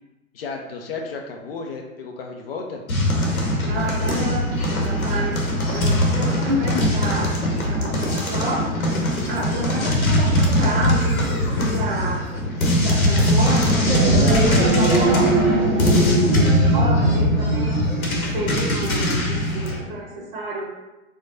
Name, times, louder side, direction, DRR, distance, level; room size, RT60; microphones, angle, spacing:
voice 1, 0.3-2.8, left 4 dB, 45° left, 2 dB, 0.5 m, -33 dB
sound 1, 2.9-19.8, left 1 dB, 80° left, 0.9 m, -21 dB
voice 2, 3.6-7.4 7.7-8.8 9.3-12.3 12.7-17.8 18.2-20.7, right 1 dB, 40° right, -1 dB, 0.7 m, -29 dB
sound 2, 13.7-18.3, right 2 dB, 85° right, 0.7 m, -21 dB
4.4 x 2.2 x 2.6 m, 1.0 s
figure-of-eight pair, 110°, 41 cm